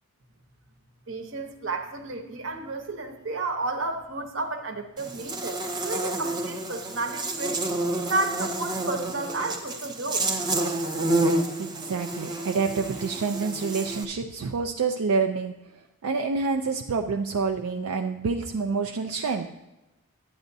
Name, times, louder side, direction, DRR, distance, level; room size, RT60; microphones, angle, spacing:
voice 1, 1.1-7.6 8.1-10.3, right 2 dB, 60° right, 6 dB, 1.0 m, -32 dB
Buzz, 5.0-14.0, right 2 dB, 20° right, 0.6 m, -29 dB
voice 2, 11.6-15.6 16.0-19.5, right 4 dB, 80° right, 4 dB, 0.4 m, -27 dB
11.5 x 9.2 x 2.7 m, 0.99 s
head